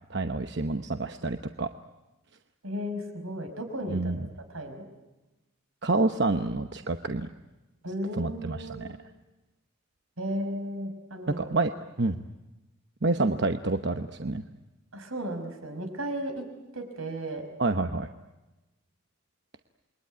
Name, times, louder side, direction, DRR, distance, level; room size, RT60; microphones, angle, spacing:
voice 1, 0.1-1.7 3.9-4.3 5.8-7.3 8.2-8.9 11.3-11.7 12.0-12.2 13.0-14.4 17.6-18.1, right 2 dB, 55° right, 7 dB, 0.9 m, -28 dB
voice 2, 2.6-4.1 4.5-4.8 7.8-8.8 10.2-11.5 14.9-16.4 16.7-17.4, equal, 85° right, 6 dB, 5.3 m, -34 dB
28.0 x 22.5 x 9.4 m, 1.1 s
head